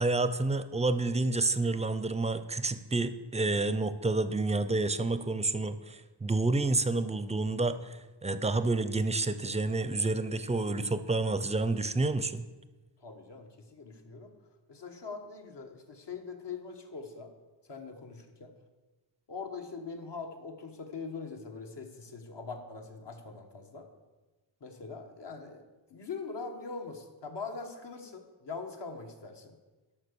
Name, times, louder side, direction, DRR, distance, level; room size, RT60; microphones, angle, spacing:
voice 1, 0.0-12.4, right 3 dB, 15° right, 12 dB, 0.5 m, -29 dB
voice 2, 13.0-14.3 14.7-17.3 17.6-18.5 19.3-23.9 24.6-25.6 25.9-29.6, left 4 dB, 65° left, 3 dB, 1.5 m, -42 dB
12.0 x 5.9 x 6.8 m, 1.2 s
wide cardioid pair, 135°, 45 cm